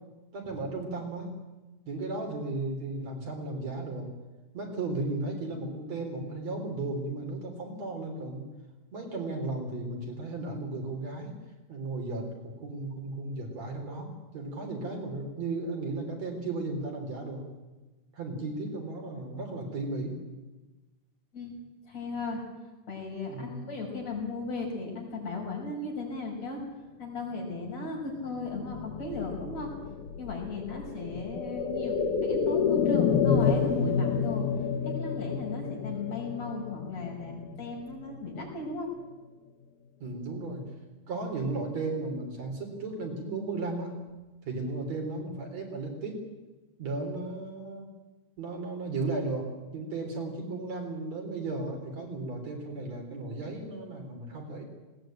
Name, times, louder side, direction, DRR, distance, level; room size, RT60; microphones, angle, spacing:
voice 1, 0.3-1.4 1.9-4.1 4.5-8.4 8.9-11.3 11.7-17.4 18.1-20.2 23.3-23.6 31.0-31.3 40.0-40.7 41.1-44.0 44.4-46.2 46.8-47.9 48.4-54.6, right 2 dB, 55° right, 2 dB, 4.8 m, -35 dB
voice 2, 21.9-22.4 22.9-26.6 27.0-29.7 30.2-34.5 34.8-38.9, left 3 dB, 55° left, -1 dB, 6.8 m, -36 dB
sound 1, 28.4-38.2 38.5-38.6, left 6 dB, 75° left, 2.7 m, -29 dB
20.0 x 18.5 x 9.0 m, 1.1 s
omnidirectional pair, 3.7 m